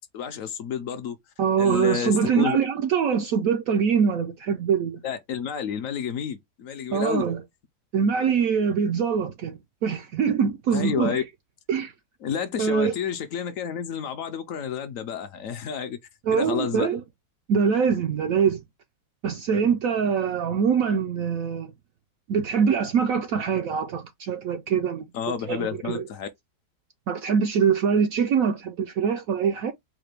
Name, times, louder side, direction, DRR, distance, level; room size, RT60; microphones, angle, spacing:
voice 1, 0.1-1.2 1.6-2.6 5.0-7.3 10.7-11.2 12.2-16.0 16.3-16.9 25.1-26.3, left 8 dB, 65° left, 0.8 m, -30 dB
voice 2, 1.4-5.0 6.9-7.4 7.9-11.2 11.7-11.9 12.6-12.9 16.3-17.0 17.5-18.6 19.2-21.7 22.3-25.1 25.5-26.0 27.1-29.7, right 6 dB, 70° right, 0.8 m, -23 dB
4.8 x 2.2 x 3.3 m
omnidirectional pair, 1.9 m